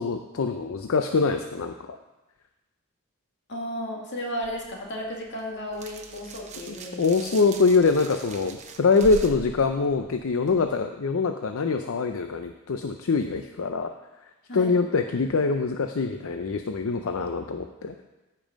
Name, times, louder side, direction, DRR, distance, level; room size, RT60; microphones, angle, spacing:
voice 1, 0.0-2.0 6.7-13.9 14.5-17.9, left 4 dB, 75° left, 6 dB, 0.5 m, -24 dB
voice 2, 3.5-7.0 14.5-14.8, equal, 60° left, -1 dB, 2.2 m, -34 dB
sound 1, 4.4-10.7, right 3 dB, 35° right, 0.9 m, -42 dB
14.0 x 5.4 x 5.2 m, 1.1 s
head